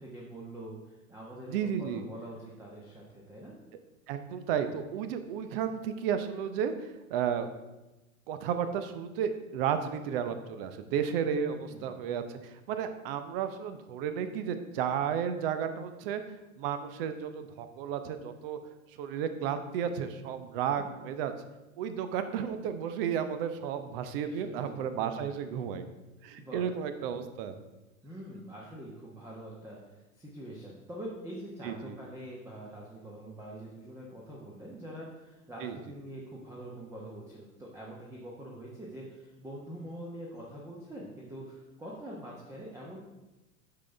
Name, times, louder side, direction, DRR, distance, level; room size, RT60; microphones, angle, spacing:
voice 1, 0.0-3.6 11.3-11.9 20.8-20.9 24.2-25.3 26.4-26.7 28.0-43.0, right 1 dB, 5° right, -3 dB, 1.1 m, -45 dB
voice 2, 1.5-2.0 4.1-7.5 8.3-16.2 16.6-18.6 19.0-21.3 21.8-25.8 26.2-27.6 31.6-32.0 35.6-35.8, right 8 dB, 40° right, 9 dB, 0.8 m, -33 dB
9.7 x 5.8 x 3.4 m, 1.0 s
figure-of-eight pair, 90°, 42 cm